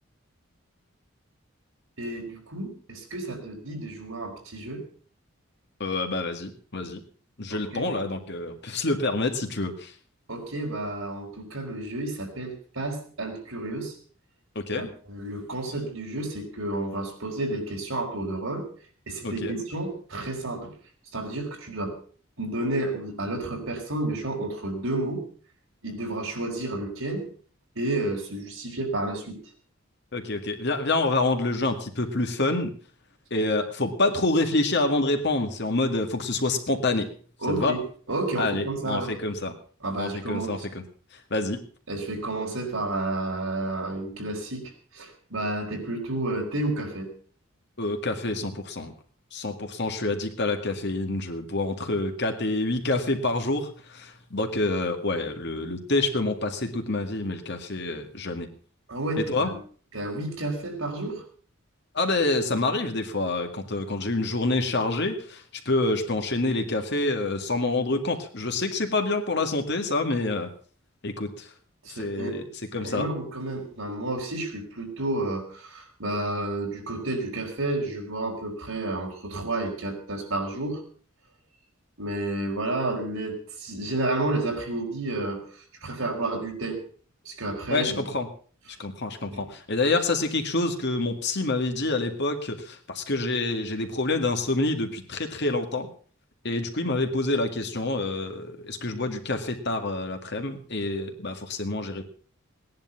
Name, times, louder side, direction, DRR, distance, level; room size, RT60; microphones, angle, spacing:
voice 1, 2.0-4.8 7.5-7.9 10.3-13.9 14.8-18.7 19.1-20.8 21.1-22.0 22.4-25.2 25.8-27.3 27.7-29.4 37.4-37.8 38.1-39.2 39.8-40.7 41.9-47.1 58.9-59.6 59.9-61.2 71.8-72.4 72.7-80.8 82.0-86.8 87.2-88.0 89.3-89.5, right 2 dB, 80° right, 1 dB, 4.8 m, -31 dB
voice 2, 5.8-7.0 7.4-9.9 14.6-14.9 19.2-19.6 30.1-32.7 33.3-37.1 37.5-37.8 38.4-39.5 40.0-40.6 41.3-41.6 47.8-48.9 49.3-58.5 59.3-59.5 61.9-70.5 71.0-71.5 72.0-72.4 72.7-73.1 87.7-88.3 88.8-95.9 96.4-102.1, left 2 dB, 55° left, 5 dB, 2.1 m, -27 dB
18.0 x 10.5 x 5.8 m, 0.43 s
head